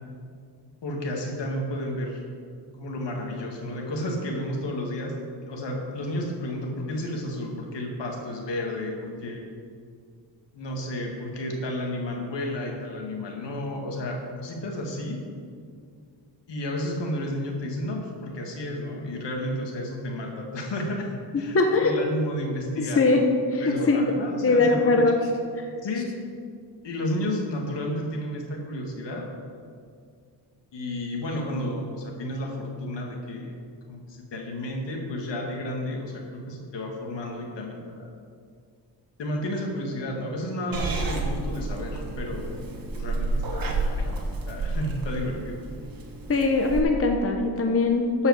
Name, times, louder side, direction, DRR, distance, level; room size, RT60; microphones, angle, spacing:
voice 1, 0.8-2.2 2.8-9.4 10.5-15.2 16.5-21.6 21.8-23.0 23.6-25.0 25.8-26.1 26.8-29.3 30.7-33.6 33.9-38.1 39.2-42.7 43.0-45.6, left 1 dB, 75° left, 1 dB, 2.1 m, -32 dB
voice 2, 21.5-21.9 22.8-24.2 24.4-25.2 25.6-25.7 46.3-48.3, left 3 dB, 30° left, 3 dB, 0.9 m, -21 dB
Purr / Meow, 40.7-46.8, right 2 dB, 50° right, 1.7 m, -30 dB
12.0 x 5.5 x 7.2 m, 2.2 s
wide cardioid pair, 125°, 43 cm